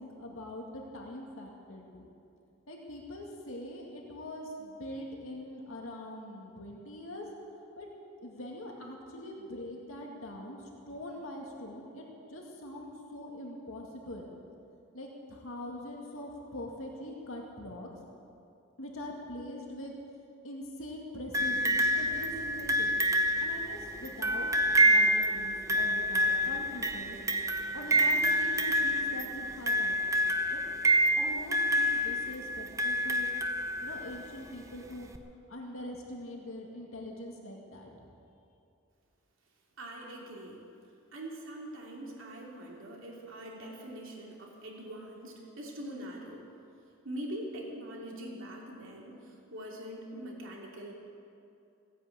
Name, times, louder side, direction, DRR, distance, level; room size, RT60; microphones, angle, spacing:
voice 1, 0.0-2.1 2.7-7.3 7.8-7.9 8.2-14.3 14.9-17.9 18.8-20.0 20.4-22.9 23.4-24.5 24.8-27.2 27.7-30.0 30.5-30.6 31.2-33.3 33.8-35.1 35.5-37.9, left 1 dB, 75° left, 0 dB, 2.2 m, -43 dB
sound 1, 21.3-34.2 35.1-35.2, right 1 dB, 15° right, 0.6 m, -28 dB
voice 2, 39.8-40.6 41.1-46.4 47.0-50.9, right 1 dB, 65° right, -2 dB, 2.8 m, -43 dB
16.5 x 10.0 x 8.6 m, 2.6 s
head